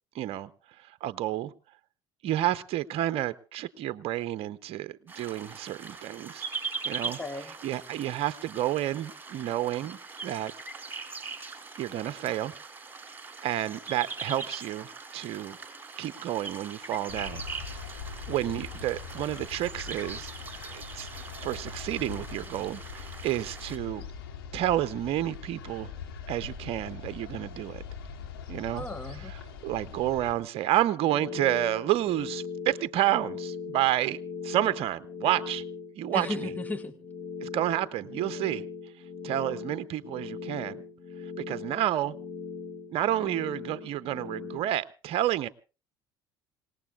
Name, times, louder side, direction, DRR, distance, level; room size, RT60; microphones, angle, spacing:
voice 1, 0.1-0.5 0.8-1.5 2.2-6.5 6.8-7.2 7.6-10.5 11.8-12.5 13.4-15.6 16.0-17.4 17.7-17.9 18.3-20.3 20.7-21.1 21.4-24.1 24.5-25.9 26.3-27.8 28.5-28.8 29.2-34.2 34.4-35.6 36.0-36.5 37.4-38.6 39.2-40.8 41.5-42.1 42.9-45.5, right 13 dB, 55° right, 0.7 m, -30 dB
sound 1, 5.1-23.8, right 4 dB, 15° right, 4.5 m, -41 dB
voice 2, 7.0-7.5 28.7-29.3 36.1-36.9, left 2 dB, 15° left, 1.4 m, -36 dB
sound 2, 17.1-30.3, left 6 dB, 90° left, 2.5 m, -42 dB
sound 3, 30.9-44.6, left 5 dB, 45° left, 3.7 m, -39 dB
27.0 x 18.0 x 2.4 m
hypercardioid pair, 65°, 12 cm